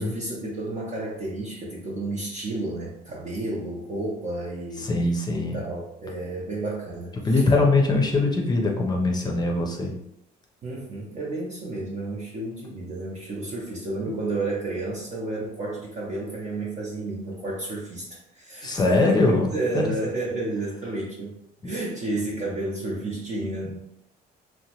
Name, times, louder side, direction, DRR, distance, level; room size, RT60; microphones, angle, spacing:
voice 1, 0.0-4.9 5.3-7.4 10.6-21.3 21.6-23.8, right 2 dB, 50° right, -5 dB, 0.7 m, -31 dB
voice 2, 4.8-5.6 7.2-9.9 18.6-19.9, left 2 dB, 25° left, 1 dB, 0.6 m, -22 dB
2.9 x 2.1 x 2.9 m, 0.78 s
cardioid pair, 110°, 17 cm